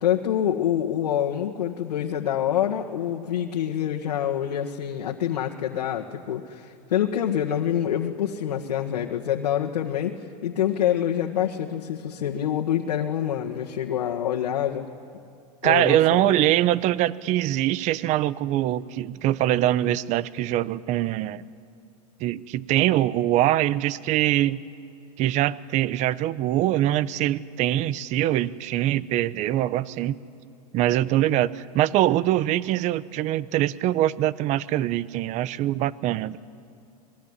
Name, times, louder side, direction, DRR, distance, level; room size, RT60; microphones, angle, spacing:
voice 1, 0.0-14.9 15.6-16.3, left 10 dB, 85° left, 0 dB, 1.8 m, -26 dB
voice 2, 15.6-21.5 22.2-24.6 25.2-30.2 30.7-36.4, right 13 dB, 35° right, 18 dB, 0.7 m, -23 dB
27.0 x 20.5 x 9.8 m, 2.5 s
supercardioid pair, 130°, 20 cm